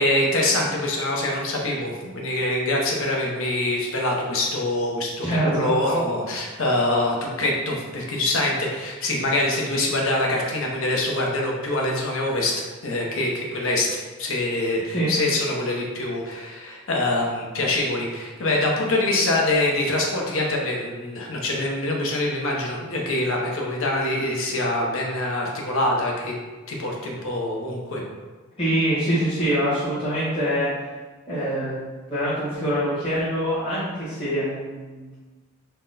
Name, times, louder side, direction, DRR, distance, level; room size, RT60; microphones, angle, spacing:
voice 1, 0.0-12.5 12.8-13.9 14.2-26.3 26.7-28.0, left 1 dB, 65° left, -1 dB, 0.8 m, -24 dB
voice 2, 5.2-5.7 14.9-15.1 28.6-30.7 31.3-35.1, equal, 25° left, -13 dB, 1.2 m, -24 dB
4.2 x 2.2 x 3.9 m, 1.3 s
head